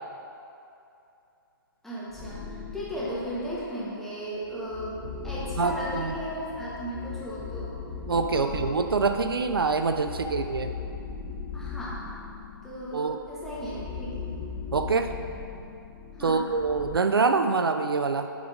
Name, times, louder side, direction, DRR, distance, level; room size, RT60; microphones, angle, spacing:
voice 1, 1.8-7.7 8.2-8.7 10.2-10.3 11.5-12.0 12.6-14.3 16.2-16.5, equal, ahead, -10 dB, 1.6 m, -35 dB
sound 1, 2.1-3.8 4.4-17.0, left 5 dB, 20° left, 0.6 m, -39 dB
voice 2, 5.6-6.1 8.1-10.7 12.9-13.2 14.7-15.1 16.2-18.3, right 4 dB, 75° right, 7 dB, 0.4 m, -25 dB
9.1 x 4.6 x 3.7 m, 2.7 s
figure-of-eight pair, 125°, 12 cm